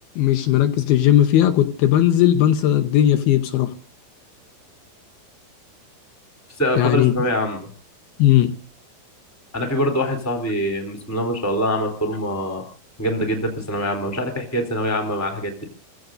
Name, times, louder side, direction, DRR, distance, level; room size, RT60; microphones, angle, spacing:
voice 1, 0.2-3.7 6.8-7.1 8.2-8.5, left 12 dB, 75° left, 2.8 m, -17 dB
voice 2, 6.6-7.7 9.5-12.6 13.0-15.7, equal, 5° left, 2.6 m, -24 dB
30.0 x 16.0 x 2.6 m
omnidirectional pair, 4.6 m